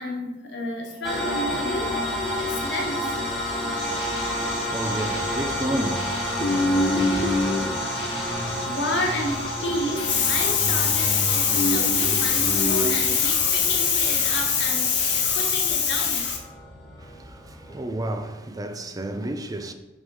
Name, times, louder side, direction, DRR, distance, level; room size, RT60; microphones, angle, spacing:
voice 1, 0.0-3.2 8.6-16.4, left 6 dB, 80° left, 1.5 m, -24 dB
sound 1, 1.0-18.1, equal, ahead, 1.4 m, -31 dB
sound 2, 3.8-16.3, left 2 dB, 30° left, 2.2 m, -37 dB
voice 2, 4.3-7.3 17.0-19.7, right 1 dB, 20° right, 0.5 m, -32 dB
sound 3, 6.4-7.7 8.2-9.9 10.2-12.9, left 1 dB, 65° left, 1.8 m, -27 dB
6.6 x 3.6 x 6.2 m
head